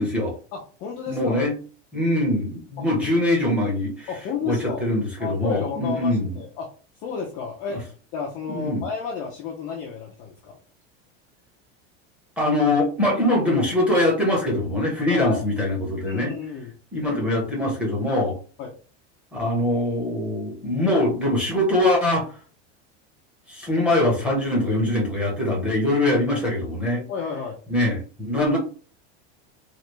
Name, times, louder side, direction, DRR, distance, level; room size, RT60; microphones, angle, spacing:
voice 1, 0.0-0.3 1.1-1.5 1.9-4.1 4.4-6.4 8.5-8.8 12.4-16.3 16.9-18.4 19.3-22.4 23.5-27.0 27.7-28.6, left 1 dB, 5° right, -3 dB, 0.8 m, -23 dB
voice 2, 0.5-1.5 2.8-2.9 4.1-4.9 5.2-6.7 7.0-7.8 8.1-10.6 15.1-15.4 16.0-16.7 18.6-18.7 27.1-27.6, left 6 dB, 25° left, -1 dB, 0.4 m, -32 dB
3.3 x 2.4 x 2.9 m, 0.38 s
supercardioid pair, 180°, 32 cm